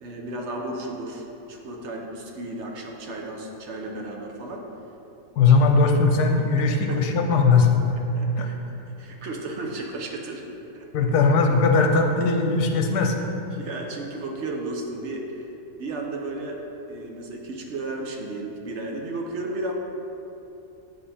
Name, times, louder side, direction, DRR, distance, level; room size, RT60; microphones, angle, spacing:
voice 1, 0.0-4.7 6.6-7.0 8.1-8.6 9.0-10.9 13.5-15.5 15.8-19.7, right 2 dB, 55° right, 1 dB, 0.9 m, -34 dB
voice 2, 5.3-7.8 8.4-8.5 10.9-13.1, left 4 dB, 75° left, 3 dB, 1.2 m, -19 dB
8.4 x 5.5 x 4.2 m, 3.0 s
omnidirectional pair, 1.7 m